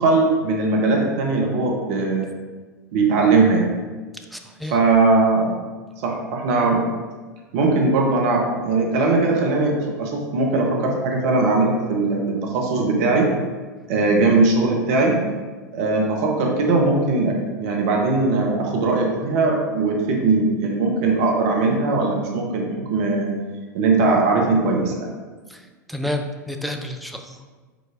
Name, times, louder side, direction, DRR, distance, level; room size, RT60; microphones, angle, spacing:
voice 1, 0.0-2.3 2.9-3.7 4.7-5.6 6.0-6.9 7.5-13.3 13.9-15.2 15.7-23.3 23.7-25.1, right 3 dB, 50° right, 0 dB, 0.8 m, -20 dB
voice 2, 4.3-4.8 25.5-27.4, left 1 dB, ahead, 4 dB, 0.4 m, -30 dB
4.8 x 4.4 x 2.5 m, 1.4 s
figure-of-eight pair, 90°, 10 cm